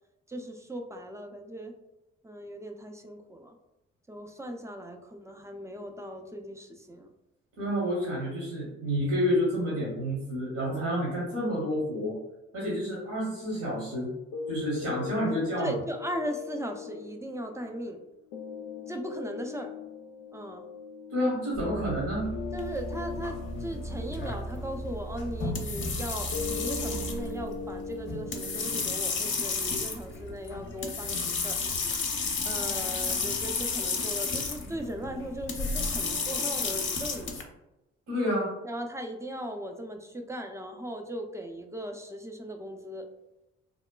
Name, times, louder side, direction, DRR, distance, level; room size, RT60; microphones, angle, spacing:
voice 1, 0.3-1.7 2.2-3.5 4.1-7.1 15.6-18.0 18.9-19.7 20.3-20.7 22.5-31.6 32.5-37.4 38.6-43.1, equal, 10° right, 3 dB, 0.4 m, -38 dB
voice 2, 7.6-12.2 12.5-14.1 14.5-15.7 21.1-22.3 38.1-38.5, equal, 65° right, -6 dB, 1.0 m, -29 dB
sound 1, 14.3-30.3, left 5 dB, 85° left, 0.5 m, -41 dB
sound 2, 21.5-27.1, right 2 dB, 90° right, 0.7 m, -38 dB
sound 3, 22.6-37.4, left 4 dB, 35° left, 0.6 m, -32 dB
2.9 x 2.1 x 2.2 m, 0.96 s
hypercardioid pair, 45°, 33 cm